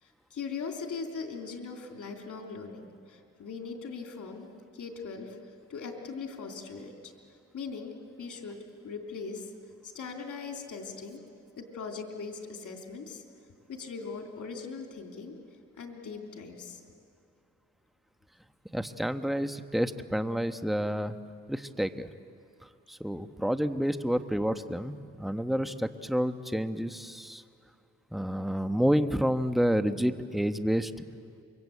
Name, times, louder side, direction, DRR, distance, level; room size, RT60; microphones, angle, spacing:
voice 1, 0.0-4.5 4.7-5.4 5.7-7.1 7.5-8.6 8.8-9.5 9.8-11.2 11.6-13.2 13.7-15.4 15.8-16.8, left 5 dB, 80° left, 2 dB, 3.3 m, -40 dB
voice 2, 18.7-21.2 21.5-22.1 22.9-27.4 28.1-30.9, equal, ahead, 8 dB, 1.4 m, -29 dB
28.5 x 24.0 x 8.6 m, 2.5 s
cardioid pair, 50°, 30 cm